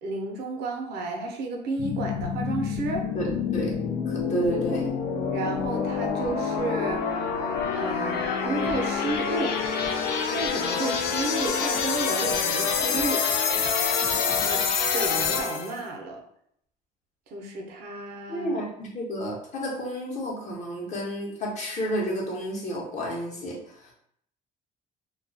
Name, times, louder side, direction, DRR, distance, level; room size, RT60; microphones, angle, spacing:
voice 1, 0.0-3.1 5.3-7.0 7.7-9.5 10.3-13.2 14.3-14.6 14.9-16.2 17.3-18.6, right 3 dB, 70° right, 2 dB, 0.6 m, -32 dB
sound 1, 1.8-15.8, left 6 dB, 75° left, 0.4 m, -27 dB
voice 2, 3.1-3.7 4.1-4.9 18.3-23.6, right 1 dB, 45° left, -2 dB, 0.8 m, -31 dB
2.3 x 2.2 x 2.5 m, 0.69 s
cardioid pair, 110°, 17 cm